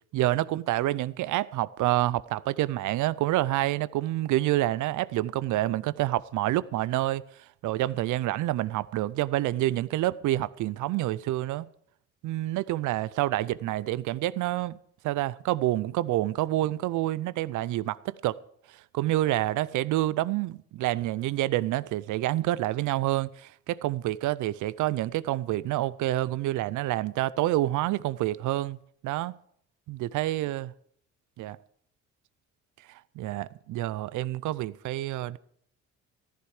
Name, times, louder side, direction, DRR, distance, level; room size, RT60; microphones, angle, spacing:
voice 1, 0.1-7.2 7.6-11.7 12.2-14.8 15.0-18.4 18.7-28.8 29.0-29.4 29.9-30.7 31.4-31.6 32.9-35.4, right 15 dB, 80° right, 0.5 m, -28 dB
13.5 x 11.5 x 4.9 m
cardioid pair, 90°, 30 cm